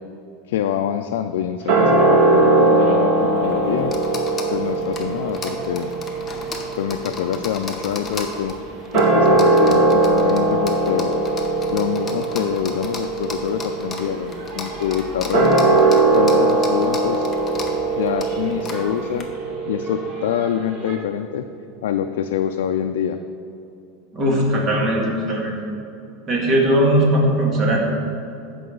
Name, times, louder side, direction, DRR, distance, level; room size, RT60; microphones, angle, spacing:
voice 1, 0.5-3.9 4.5-5.9 6.8-8.6 8.9-11.1 11.7-15.7 16.1-17.3 18.0-19.3 19.7-21.5 21.8-23.2, left 9 dB, 90° left, 6 dB, 0.4 m, -25 dB
sound 1, 1.7-8.3 8.8-21.0, right 2 dB, 50° right, 1.5 m, -20 dB
sound 2, 3.2-19.2, left 2 dB, 15° left, 0.9 m, -36 dB
voice 2, 24.1-25.6 26.3-27.8, right 1 dB, 30° right, -2 dB, 1.9 m, -19 dB
14.0 x 5.4 x 3.9 m, 2.7 s
supercardioid pair, 150°, 0 cm